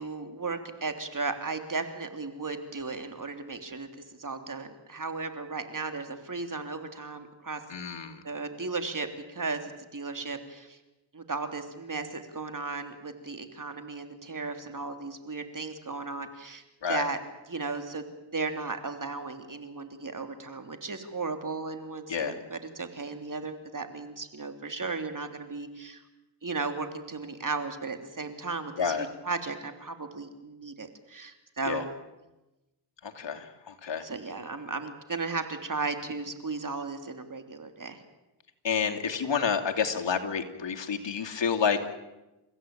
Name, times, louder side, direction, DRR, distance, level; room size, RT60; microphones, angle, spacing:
voice 1, 0.0-7.6 8.2-10.8 11.1-17.2 17.5-18.0 18.3-26.0 26.4-31.9 34.0-38.0, right 3 dB, 45° right, 7 dB, 3.3 m, -35 dB
voice 2, 7.7-8.2 16.8-17.1 22.1-22.4 28.8-29.1 31.6-31.8 33.0-34.0 38.6-41.9, left 6 dB, 70° left, 4 dB, 2.7 m, -29 dB
30.0 x 16.0 x 9.1 m, 1.0 s
cardioid pair, 60°, 46 cm